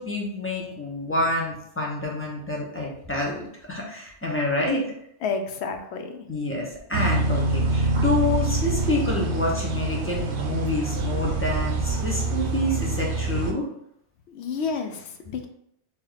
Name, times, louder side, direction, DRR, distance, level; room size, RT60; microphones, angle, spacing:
voice 1, 0.0-3.4 3.7-4.9 6.3-13.7, left 2 dB, 15° left, -3 dB, 0.7 m, -27 dB
voice 2, 5.2-6.2 14.3-15.5, left 5 dB, 70° left, 5 dB, 0.8 m, -30 dB
sound 1, 6.9-13.5, right 2 dB, 75° right, 0.9 m, -25 dB
3.0 x 3.0 x 3.9 m, 0.73 s
omnidirectional pair, 1.2 m